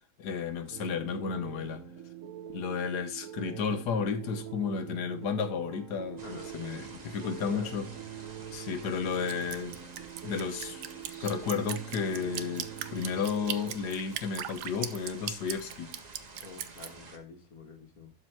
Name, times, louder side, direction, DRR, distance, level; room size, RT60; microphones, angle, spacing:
voice 1, 0.2-1.8 2.5-7.9 8.5-9.8 10.2-10.8 11.2-15.9, left 6 dB, 80° left, 1.6 m, -33 dB
sound 1, 0.7-13.7, right 9 dB, 55° right, 1.2 m, -44 dB
sound 2, 6.2-17.2, right 3 dB, 30° right, 1.0 m, -50 dB
voice 2, 7.4-7.7 16.4-18.1, left 3 dB, 60° left, 2.0 m, -47 dB
Drip, 9.3-16.9, right 10 dB, 85° right, 1.2 m, -38 dB
12.0 x 4.6 x 4.5 m
omnidirectional pair, 1.8 m